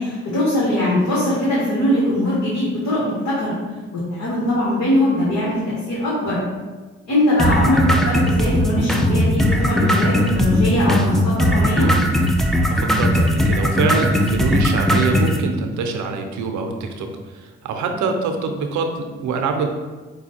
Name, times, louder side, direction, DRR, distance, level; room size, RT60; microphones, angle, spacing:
voice 1, 0.0-3.5 3.9-6.4 7.1-7.8 8.0-11.9 17.9-18.2, left 1 dB, 65° left, -6 dB, 1.4 m, -21 dB
sound 1, 7.4-15.4, equal, ahead, 0.5 m, -18 dB
voice 2, 12.7-17.1 17.3-19.7, right 4 dB, 80° right, 5 dB, 0.6 m, -24 dB
5.0 x 2.3 x 4.2 m, 1.3 s
supercardioid pair, 60°, 29 cm